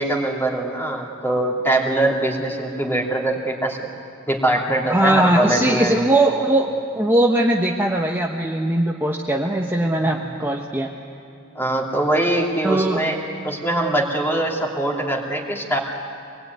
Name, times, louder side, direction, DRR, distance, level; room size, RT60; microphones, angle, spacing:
voice 1, 0.0-3.9 4.3-6.0 10.0-10.3 11.5-15.8, right 1 dB, 10° left, 0 dB, 2.8 m, -22 dB
voice 2, 4.9-10.9 12.6-13.1, right 1 dB, 10° right, -1 dB, 1.1 m, -20 dB
24.0 x 20.5 x 9.4 m, 2.4 s
head